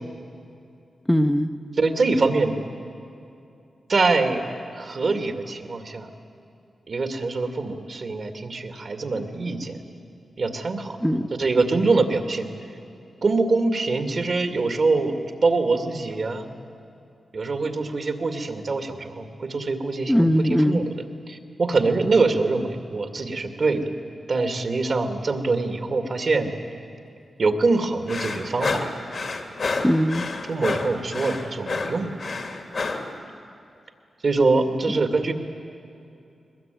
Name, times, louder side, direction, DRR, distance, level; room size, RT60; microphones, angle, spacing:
voice 1, 1.1-1.5 11.0-11.3 20.1-20.8 29.8-30.3 34.9-35.0, equal, 5° left, 6 dB, 1.0 m, -20 dB
voice 2, 1.8-2.5 3.9-4.4 4.7-6.1 6.9-9.8 10.4-11.0 11.4-12.5 13.2-15.1 15.4-16.6 17.3-20.3 20.7-20.8 21.3-23.9 24.3-26.5 27.4-28.9 30.5-32.1 34.2-35.3, right 3 dB, 60° right, 6 dB, 2.3 m, -24 dB
sound 1, 28.1-33.1, left 3 dB, 65° left, 2.5 m, -29 dB
21.5 x 21.0 x 9.3 m, 2.6 s
cardioid pair, 60°, 0 cm